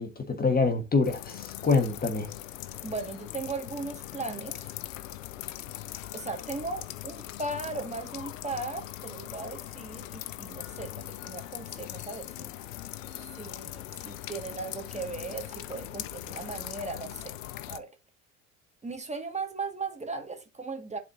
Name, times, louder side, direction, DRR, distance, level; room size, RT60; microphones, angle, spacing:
voice 1, 0.0-2.3, left 4 dB, 25° left, 1.4 m, -26 dB
sound 1, 1.0-17.8, left 14 dB, 75° left, 0.7 m, -41 dB
voice 2, 2.8-4.6 6.1-12.5 13.4-17.3 17.7-17.9 18.8-21.0, right 3 dB, 15° right, 1.8 m, -37 dB
11.0 x 4.3 x 2.7 m
hypercardioid pair, 70°, 39 cm